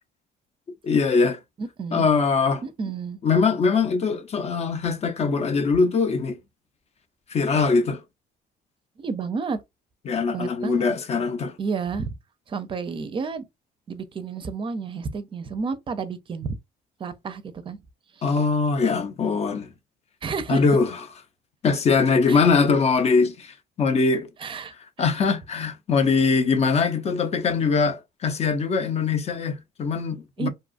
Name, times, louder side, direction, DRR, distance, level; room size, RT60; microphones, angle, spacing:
voice 1, 0.8-1.4 1.9-2.6 3.2-6.4 7.3-8.0 10.1-11.5 18.2-19.7 20.5-20.9 21.6-24.3 25.0-30.5, left 4 dB, 40° left, 0.6 m, -22 dB
voice 2, 1.6-2.1 2.6-3.2 9.0-9.6 10.3-10.9 11.6-12.1 12.5-13.5 13.9-16.6 17.0-17.8 20.2-20.6 22.3-22.5 24.4-24.7 25.0-25.1 30.4-30.5, right 5 dB, 30° right, 0.5 m, -30 dB
2.6 x 2.3 x 2.5 m
cardioid pair, 110°, 17 cm